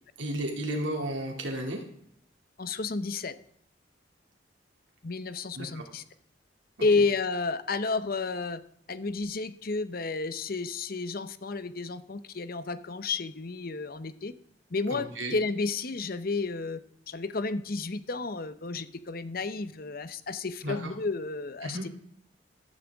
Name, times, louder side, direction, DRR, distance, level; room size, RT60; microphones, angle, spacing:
voice 1, 0.2-1.8 5.6-5.8 14.9-15.4 20.6-20.9 21.6-21.9, right 1 dB, 85° right, 0 dB, 2.5 m, -33 dB
voice 2, 2.6-3.3 5.0-6.0 6.8-8.6 8.9-14.3 14.7-16.8 17.1-21.9, left 3 dB, 55° left, 13 dB, 0.8 m, -31 dB
15.0 x 12.5 x 3.6 m, 0.66 s
head